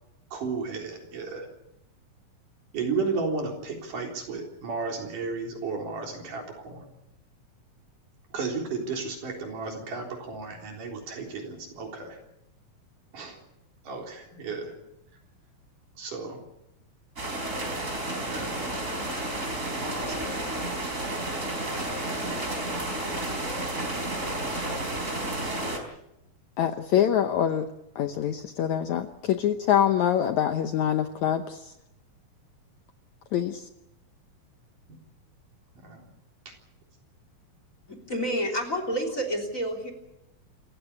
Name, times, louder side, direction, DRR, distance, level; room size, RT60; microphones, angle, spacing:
voice 1, 0.3-1.5 2.7-6.9 8.3-12.2 13.1-13.4 13.9-14.7 16.0-16.4 18.3-18.7 19.7-20.6 34.9-35.0 35.8-36.0, right 4 dB, 65° right, 2 dB, 5.3 m, -34 dB
sound 1, 17.2-25.8, right 1 dB, 20° right, 4.1 m, -31 dB
voice 2, 26.6-27.7 28.0-31.7 33.3-33.6, left 10 dB, 70° left, 7 dB, 1.9 m, -25 dB
voice 3, 37.9-39.9, equal, 20° left, 6 dB, 3.4 m, -29 dB
27.5 x 15.0 x 8.4 m, 0.85 s
omnidirectional pair, 4.1 m